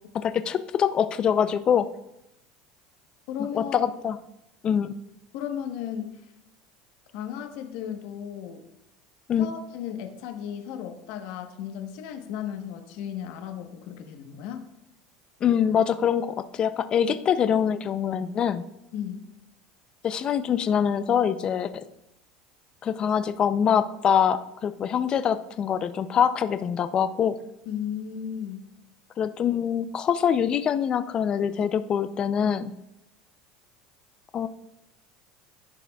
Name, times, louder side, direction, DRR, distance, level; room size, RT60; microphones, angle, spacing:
voice 1, 0.1-1.9 3.5-4.2 4.6-4.9 9.3-9.5 15.4-18.6 20.0-21.8 22.8-27.4 29.2-32.7 34.3-34.5, left 8 dB, 30° left, 11 dB, 0.4 m, -24 dB
voice 2, 3.3-3.8 5.3-6.2 7.1-8.6 9.4-14.6 18.9-19.3 27.7-28.6, left 9 dB, 70° left, 5 dB, 1.1 m, -35 dB
14.5 x 5.0 x 2.3 m, 0.85 s
supercardioid pair, 140°, 3 cm